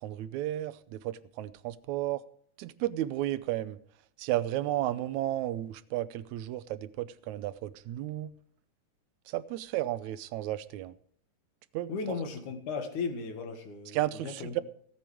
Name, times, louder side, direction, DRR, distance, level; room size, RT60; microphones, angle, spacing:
voice 1, 0.0-2.2 2.6-3.8 4.2-8.3 9.3-10.9 11.7-12.2 13.9-14.6, right 14 dB, 80° right, 2.0 m, -33 dB
voice 2, 11.9-14.0 14.2-14.5, left 5 dB, 75° left, 3.2 m, -35 dB
17.0 x 8.8 x 4.9 m
omnidirectional pair, 3.5 m